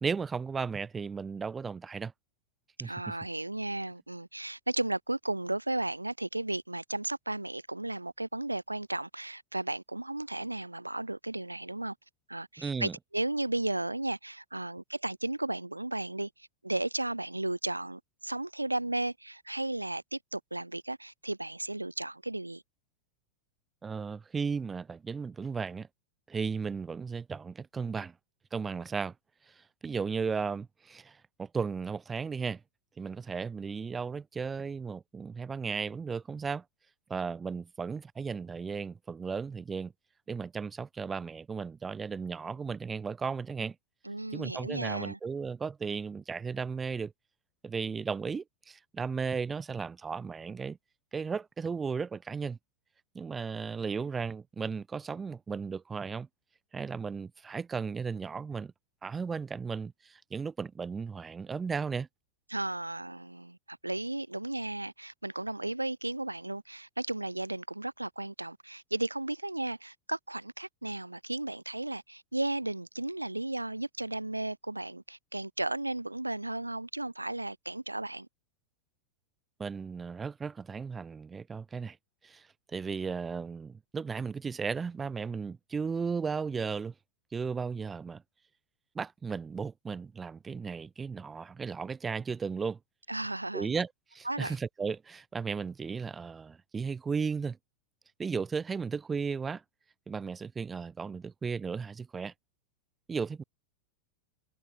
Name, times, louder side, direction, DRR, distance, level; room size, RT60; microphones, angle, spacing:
voice 1, 0.0-2.1 2.8-2.9 12.6-12.9 23.8-25.9 26.3-28.1 28.5-29.1 29.5-32.6 33.0-36.6 37.1-39.9 40.3-43.8 44.3-47.1 47.6-50.8 51.1-52.6 53.1-56.3 56.7-58.7 59.0-62.1 79.6-82.0 82.2-86.9 87.3-88.2 88.9-92.8 93.5-97.6 98.2-99.6 100.1-102.3 103.1-103.4, right 5 dB, 15° right, 0.4 m, -35 dB
voice 2, 2.8-11.9 12.3-22.6 44.0-45.2 62.5-78.3 93.1-93.7 94.3-94.6, right 2 dB, 85° right, 0.4 m, -34 dB
figure-of-eight pair, 90°, 0 cm